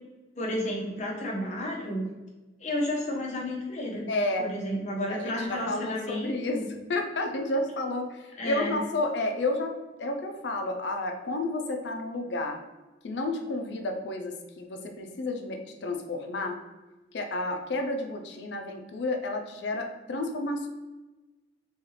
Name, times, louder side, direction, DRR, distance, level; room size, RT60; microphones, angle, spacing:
voice 1, 0.4-2.1 2.6-4.1 4.4-6.6 8.4-8.8, left 1 dB, 40° left, -2 dB, 0.9 m, -31 dB
voice 2, 4.1-4.5 5.1-6.6 6.9-12.6 13.0-16.6 17.1-20.7, left 2 dB, 70° left, 4 dB, 0.5 m, -31 dB
4.1 x 2.3 x 3.2 m, 1.1 s
head